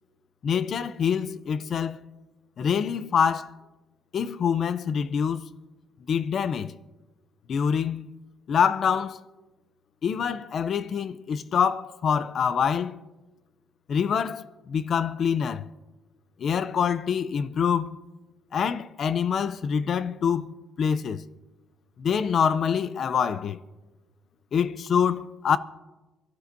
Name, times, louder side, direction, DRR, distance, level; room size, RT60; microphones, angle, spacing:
voice 1, 0.4-2.0 2.6-3.5 4.1-5.5 6.1-6.7 7.5-8.1 8.5-9.2 10.0-13.0 13.9-15.7 16.4-18.0 18.5-21.2 22.0-23.6 24.5-25.6, left 7 dB, 50° left, 0.5 m, -25 dB
25.0 x 12.5 x 2.7 m
cardioid pair, 150°, 0 cm